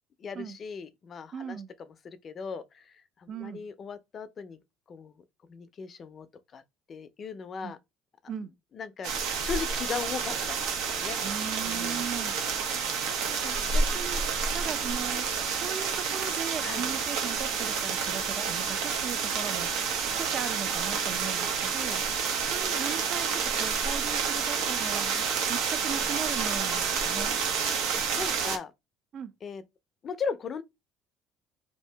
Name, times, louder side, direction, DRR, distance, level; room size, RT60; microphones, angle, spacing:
voice 1, 0.2-1.6 1.9-4.6 4.9-5.2 5.5-6.3 6.5-6.6 6.9-7.8 8.7-9.1 9.4-11.2 11.6-12.3 16.6-16.9 21.4-21.5 25.1-25.3 28.1-28.7 29.4-29.6 30.0-30.6, left 5 dB, 40° left, 0.4 m, -38 dB
voice 2, 1.3-1.7 3.3-3.6 7.6-7.7 8.3-8.5 11.2-12.4 13.3-14.2 14.5-19.9 20.2-22.0 22.5-25.1 25.5-27.3 29.1-29.3, right 7 dB, 45° right, 0.4 m, -38 dB
sound 1, 9.0-28.6, right 6 dB, 85° right, 0.7 m, -29 dB
2.7 x 2.6 x 3.3 m
cardioid pair, 115°, 0 cm